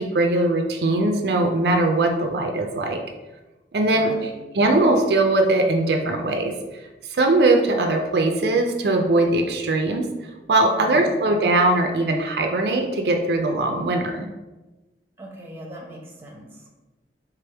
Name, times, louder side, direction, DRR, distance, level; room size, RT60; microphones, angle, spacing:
voice 1, 0.0-3.0 3.7-4.1 4.5-6.5 7.1-10.1 10.5-14.3, right 2 dB, 65° right, 3 dB, 0.5 m, -20 dB
voice 2, 3.9-4.4 10.6-11.2 15.2-16.7, right 1 dB, 15° right, -1 dB, 0.8 m, -40 dB
3.4 x 3.4 x 4.5 m, 1.1 s
head